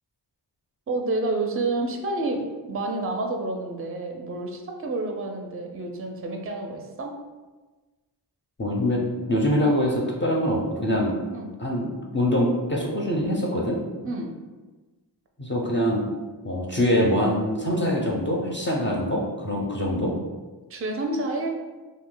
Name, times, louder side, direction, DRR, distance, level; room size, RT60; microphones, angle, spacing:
voice 1, 0.9-2.4 2.7-7.2 11.3-11.5 14.0-14.3 18.7-18.9 20.7-21.6, right 2 dB, 30° right, 2 dB, 0.5 m, -29 dB
voice 2, 8.6-9.0 9.3-11.1 11.6-13.8 15.4-16.1 16.4-20.1, equal, 25° left, -3 dB, 0.5 m, -24 dB
2.7 x 2.1 x 3.7 m, 1.2 s
wide cardioid pair, 65°, 45 cm